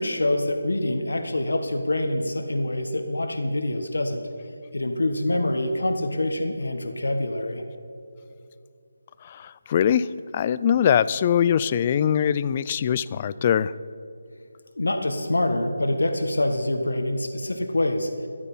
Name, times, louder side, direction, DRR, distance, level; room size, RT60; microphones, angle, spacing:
voice 1, 0.0-4.2 4.7-7.6 14.8-18.1, left 1 dB, 90° left, 6 dB, 1.3 m, -25 dB
voice 2, 9.2-13.7, left 9 dB, 25° left, 17 dB, 0.3 m, -22 dB
14.0 x 12.0 x 5.5 m, 2.6 s
figure-of-eight pair, 165°, 0 cm